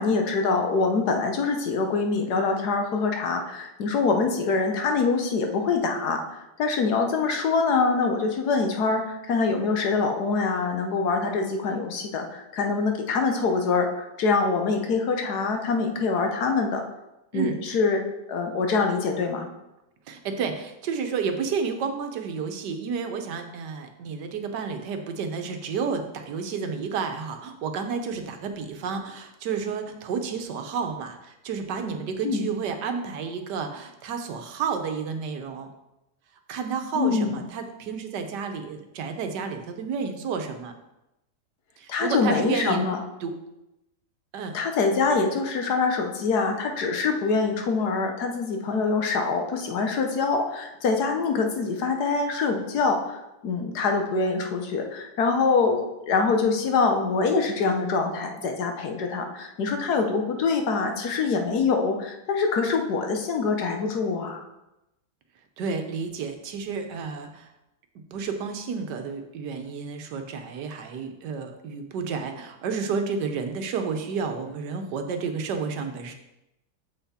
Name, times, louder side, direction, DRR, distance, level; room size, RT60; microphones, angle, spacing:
voice 1, 0.0-16.8 17.3-18.0 18.3-19.5 32.2-32.5 36.9-37.4 41.9-43.0 44.5-64.4, left 4 dB, 70° left, 4 dB, 1.5 m, -24 dB
voice 2, 17.3-17.8 20.1-35.7 36.5-40.7 41.8-42.8 43.2-43.3 44.3-44.6 65.6-67.5 68.1-76.1, right 5 dB, 85° right, 6 dB, 1.5 m, -31 dB
7.4 x 5.8 x 4.2 m, 0.92 s
omnidirectional pair, 1.8 m